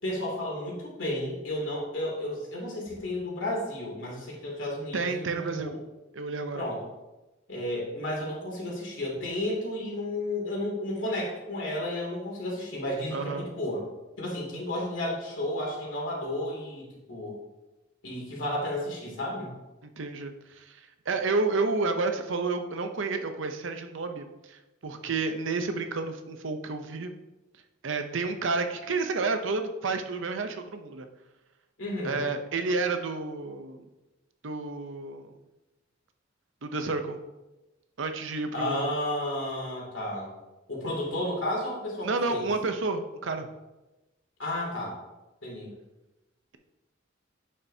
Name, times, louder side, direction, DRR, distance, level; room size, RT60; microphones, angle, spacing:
voice 1, 0.0-5.8 6.5-6.8 7.5-13.8 14.2-17.4 18.0-19.5 31.8-32.3 38.5-40.4 40.7-42.5 44.4-44.9 45.4-45.7, left 1 dB, 65° left, -3 dB, 2.7 m, -32 dB
voice 2, 4.9-5.7 6.1-6.6 13.1-13.5 19.8-20.8 21.1-27.1 27.8-31.1 32.0-33.8 34.4-35.3 36.6-37.2 38.0-38.9 42.0-43.5, right 3 dB, 65° right, 7 dB, 0.7 m, -30 dB
8.8 x 6.6 x 2.7 m, 1.0 s
head